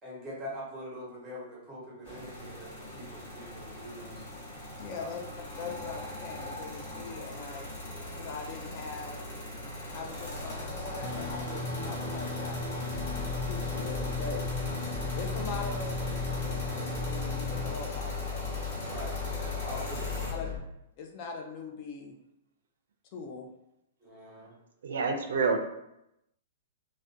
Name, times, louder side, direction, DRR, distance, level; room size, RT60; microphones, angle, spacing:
voice 1, 0.0-4.3 5.0-5.1 18.9-20.5 24.0-24.5, equal, 10° right, -5 dB, 0.8 m, -43 dB
sound 1, 2.0-20.3, left 1 dB, 55° left, 0.9 m, -39 dB
voice 2, 4.8-5.2 5.6-7.7 8.2-9.2 9.9-12.8 13.3-14.4 15.1-18.6 20.3-20.6 21.0-22.1 23.1-23.5, left 4 dB, 35° left, 2 dB, 0.3 m, -41 dB
sound 2, 11.0-17.7, left 2 dB, 75° left, 0.6 m, -37 dB
sound 3, 12.9-20.6, left 8 dB, 20° left, 0.9 m, -38 dB
voice 3, 24.8-25.6, right 4 dB, 80° right, 5 dB, 0.3 m, -27 dB
2.4 x 2.1 x 2.5 m, 0.84 s
hypercardioid pair, 160°, 0 cm